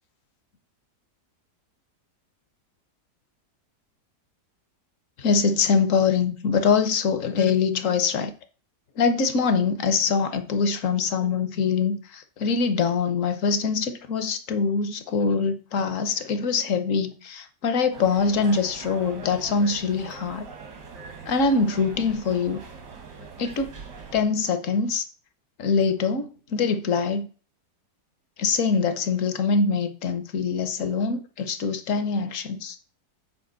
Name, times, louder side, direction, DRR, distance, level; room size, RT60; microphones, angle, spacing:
voice 1, 5.2-8.3 9.0-20.5 21.3-22.6 23.4-23.7 24.1-25.0 25.6-27.3 28.4-32.8, left 5 dB, 55° left, 1.0 m, -24 dB
sound 1, 17.9-24.2, right 5 dB, 80° right, 2.0 m, -42 dB
8.6 x 4.9 x 3.9 m
omnidirectional pair, 1.8 m